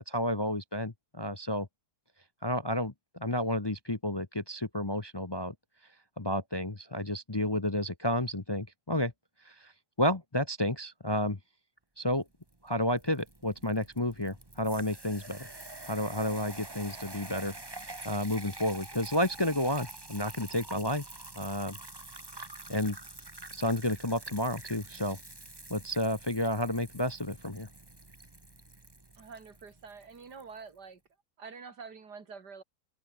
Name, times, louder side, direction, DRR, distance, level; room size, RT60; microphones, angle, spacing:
voice 1, 0.1-1.7 2.4-5.5 6.2-9.1 9.4-9.7 10.0-11.4 12.0-12.2 12.6-15.5 15.9-17.5 18.0-21.0 21.4-21.8 22.7-23.0 23.5-25.2 25.7-27.7, left 1 dB, 20° left, 0.8 m, -31 dB
sound 1, 12.5-30.5, right 2 dB, 15° right, 1.5 m, -47 dB
voice 2, 29.1-31.0 31.4-32.6, right 5 dB, 85° right, 3.1 m, -47 dB
omnidirectional pair, 1.7 m